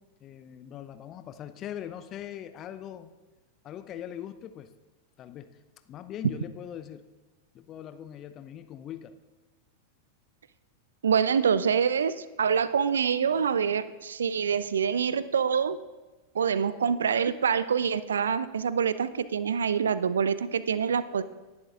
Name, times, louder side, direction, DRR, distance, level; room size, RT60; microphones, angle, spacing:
voice 1, 0.2-3.1 3.6-4.7 5.2-5.6 5.9-7.0 7.5-9.1, left 10 dB, 30° left, 11 dB, 0.7 m, -41 dB
voice 2, 11.0-15.8 16.3-21.2, right 7 dB, 70° right, 16 dB, 0.4 m, -26 dB
19.0 x 10.5 x 2.5 m, 1.2 s
figure-of-eight pair, 90°, 0 cm